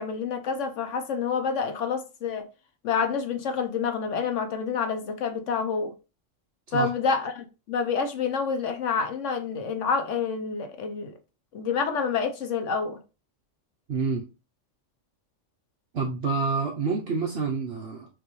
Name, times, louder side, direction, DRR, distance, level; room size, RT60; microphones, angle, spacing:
voice 1, 0.0-2.4 2.8-5.9 6.7-11.1 11.5-13.0, left 5 dB, 75° left, 1.1 m, -28 dB
voice 2, 13.9-14.3 15.9-18.1, right 4 dB, 60° right, 0.9 m, -28 dB
6.0 x 2.7 x 3.0 m
omnidirectional pair, 1.3 m